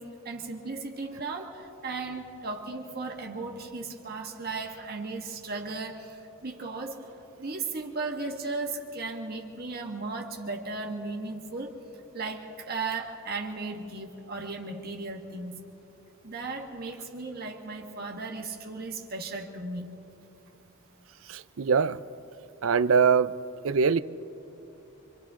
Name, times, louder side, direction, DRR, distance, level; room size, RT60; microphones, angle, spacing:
voice 1, 0.0-7.1 7.4-11.8 12.1-15.6 16.2-19.9, right 3 dB, 50° right, 1 dB, 1.8 m, -36 dB
voice 2, 21.3-22.0 22.6-23.3 23.6-24.0, right 6 dB, 80° right, 15 dB, 0.5 m, -23 dB
27.0 x 25.5 x 3.7 m, 2.8 s
head